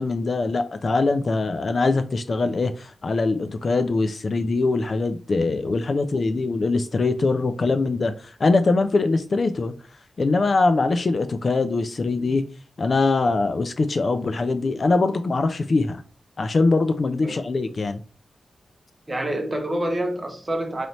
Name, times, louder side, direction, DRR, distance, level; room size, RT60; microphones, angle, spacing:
voice 1, 0.0-9.7 10.2-12.4 12.8-16.0 16.4-18.0, left 3 dB, 40° left, 0.3 m, -22 dB
voice 2, 19.1-20.9, right 1 dB, 20° right, 0.8 m, -27 dB
3.2 x 2.9 x 4.1 m
wide cardioid pair, 150°, 0 cm